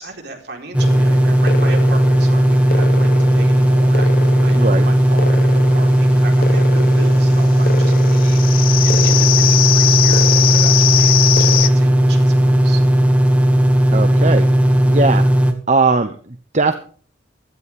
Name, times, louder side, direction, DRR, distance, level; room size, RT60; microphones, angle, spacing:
voice 1, 0.0-12.8, right 3 dB, 55° right, 1 dB, 4.3 m, -35 dB
sound 1, 0.7-15.5, right 1 dB, 5° right, 1.9 m, -14 dB
sound 2, 0.8-11.7, left 9 dB, 45° left, 1.0 m, -22 dB
voice 2, 4.5-4.8 13.9-14.5 14.8-15.2 15.7-16.8, right 3 dB, 35° right, 9 dB, 1.0 m, -18 dB
16.5 x 14.0 x 3.6 m, 0.43 s
head